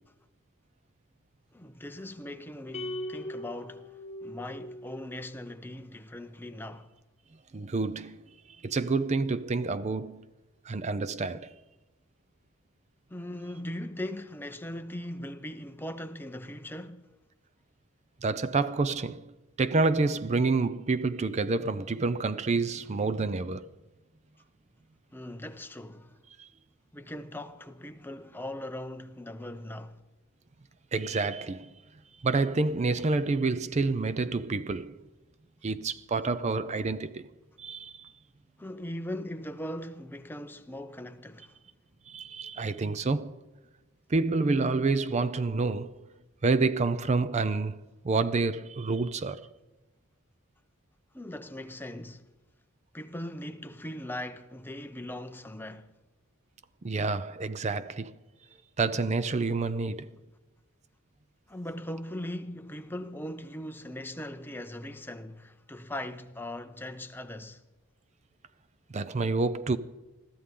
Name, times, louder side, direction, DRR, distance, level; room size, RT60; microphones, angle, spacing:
voice 1, 1.5-3.9 4.2-6.9 13.1-17.2 25.1-26.2 26.9-30.0 38.6-41.6 51.1-52.3 52.9-55.9 61.5-67.6, left 1 dB, 10° left, 0.7 m, -40 dB
sound 1, 2.7-5.2, left 1 dB, 30° left, 1.6 m, -39 dB
voice 2, 7.5-8.2 8.6-10.2 10.7-11.5 18.2-19.3 19.6-23.7 26.4-26.5 30.9-31.7 32.2-35.0 35.6-37.3 37.6-38.1 42.1-43.4 44.1-45.9 46.4-47.8 48.0-49.5 56.8-58.1 58.8-60.1 68.9-69.8, right 3 dB, 35° right, 0.5 m, -28 dB
21.5 x 14.0 x 3.8 m
head